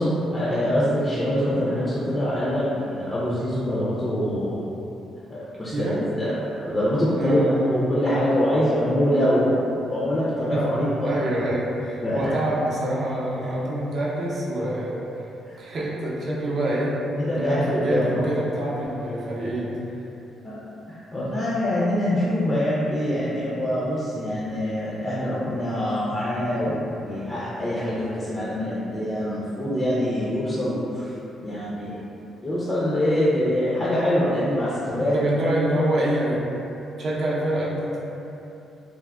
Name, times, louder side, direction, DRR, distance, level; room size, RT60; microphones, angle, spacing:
voice 1, 0.0-4.7 5.3-6.3 6.6-7.4 7.7-9.6 9.9-11.2 12.0-12.4 15.5-15.6 17.3-18.3 20.4-20.6 20.9-31.1 31.4-32.0 32.4-35.2, equal, 25° left, -9 dB, 0.5 m, -24 dB
voice 2, 7.2-7.8 10.5-10.7 11.0-15.3 15.6-17.0 17.3-19.8 35.1-36.4 37.0-38.0, right 1 dB, 55° right, -7 dB, 0.6 m, -26 dB
3.3 x 2.1 x 2.3 m, 2.9 s
cardioid pair, 90°, 0 cm